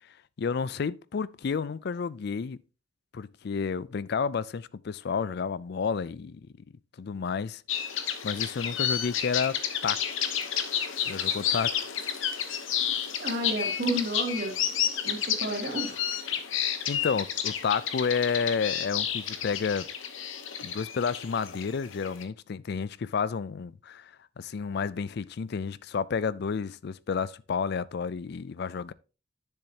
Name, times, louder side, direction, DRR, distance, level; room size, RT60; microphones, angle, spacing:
voice 1, 0.4-2.6 3.1-6.5 7.0-7.6 8.2-10.2 11.1-11.9 16.6-19.9 20.6-28.9, left 5 dB, 55° left, 0.4 m, -31 dB
sound 1, 7.7-22.2, left 9 dB, 85° left, 0.9 m, -31 dB
voice 2, 13.2-14.5 15.0-16.0, right 1 dB, 55° right, 2.4 m, -31 dB
9.9 x 7.1 x 2.8 m
head